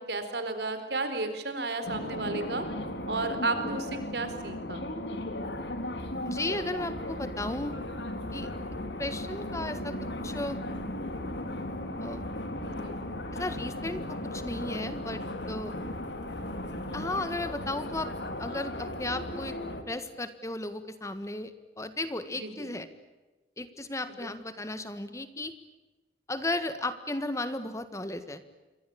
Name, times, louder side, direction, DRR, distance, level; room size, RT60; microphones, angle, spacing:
voice 1, 0.1-2.7 3.1-4.9 12.6-12.9 22.4-22.7 24.2-24.3, right 3 dB, 70° right, 9 dB, 4.3 m, -33 dB
sound 1, 1.8-19.8, left 1 dB, 80° left, 3.4 m, -36 dB
voice 2, 6.2-7.7 8.3-8.5 9.0-10.0 10.2-10.6 12.0-12.2 13.3-15.7 16.9-18.1 18.4-19.5 19.9-22.9 23.6-25.5 26.3-28.4, left 2 dB, 15° left, 11 dB, 1.6 m, -35 dB
28.5 x 24.0 x 8.7 m, 1.1 s
head